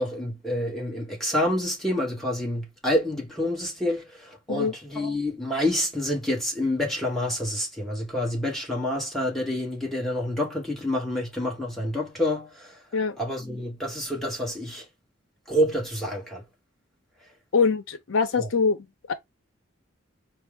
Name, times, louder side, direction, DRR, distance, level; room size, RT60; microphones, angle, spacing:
voice 1, 0.0-12.8 13.2-14.8 15.5-16.4 18.4-18.5, left 1 dB, ahead, 1.0 m, -28 dB
voice 2, 17.5-19.1, left 5 dB, 75° left, 0.6 m, -24 dB
4.4 x 2.0 x 3.4 m
head